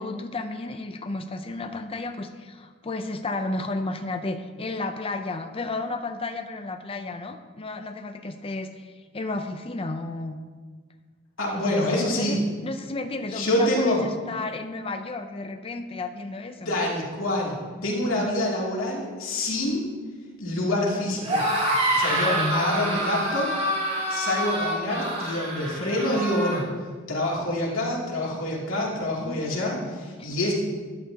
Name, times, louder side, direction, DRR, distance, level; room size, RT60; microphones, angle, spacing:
voice 1, 0.0-10.4 11.5-16.7 18.1-18.4 22.3-23.0 29.2-29.4 30.2-30.3, left 2 dB, 30° left, 7 dB, 0.5 m, -32 dB
voice 2, 11.4-12.4 13.3-14.0 16.6-19.9 20.4-21.4 21.9-23.5 24.1-26.6 27.1-30.5, left 1 dB, 80° left, -3 dB, 2.7 m, -26 dB
sound 1, 21.2-26.6, right 1 dB, 30° right, 2.4 m, -27 dB
13.0 x 11.0 x 2.9 m, 1.5 s
head